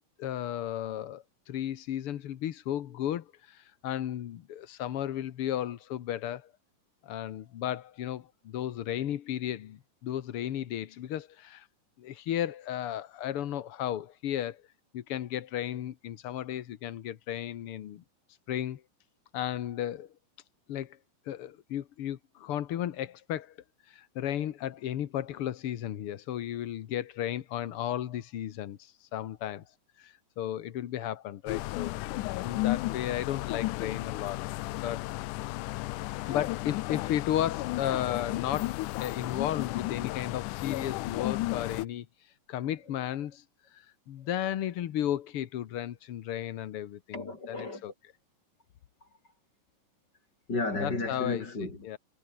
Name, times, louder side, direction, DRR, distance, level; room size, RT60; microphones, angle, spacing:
voice 1, 0.2-6.5 7.0-11.7 12.0-14.6 14.9-18.0 18.5-18.8 19.3-20.1 20.7-21.0 21.2-23.6 23.9-29.6 30.0-31.9 32.4-34.5 34.7-35.1 36.2-47.9 50.8-51.4 51.8-52.0, left 11 dB, 65° left, 1.4 m, -34 dB
sound 1, 31.5-41.9, left 19 dB, 80° left, 2.0 m, -33 dB
voice 2, 35.8-36.4 47.1-47.8 49.0-49.1 50.5-51.9, left 2 dB, 30° left, 6.6 m, -34 dB
omnidirectional pair, 3.9 m